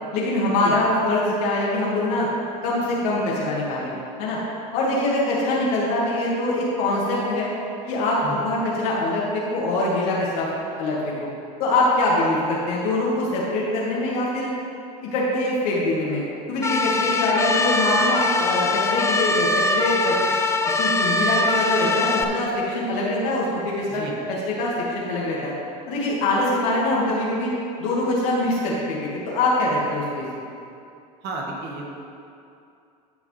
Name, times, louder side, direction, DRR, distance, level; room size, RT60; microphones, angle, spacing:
voice 1, 0.1-2.3 2.6-3.9 4.2-4.4 4.7-7.5 7.9-10.5 10.8-11.3 11.6-14.5 15.0-16.2 16.5-20.2 20.8-25.5 25.9-27.5 27.8-30.5, left 2 dB, 65° left, -5 dB, 2.0 m, -23 dB
sound 1, 16.6-22.2, left 2 dB, 15° left, 0.5 m, -22 dB
voice 2, 31.2-31.9, right 3 dB, 55° right, -1 dB, 1.9 m, -32 dB
15.0 x 5.0 x 3.3 m, 2.5 s
hypercardioid pair, 100°, 21 cm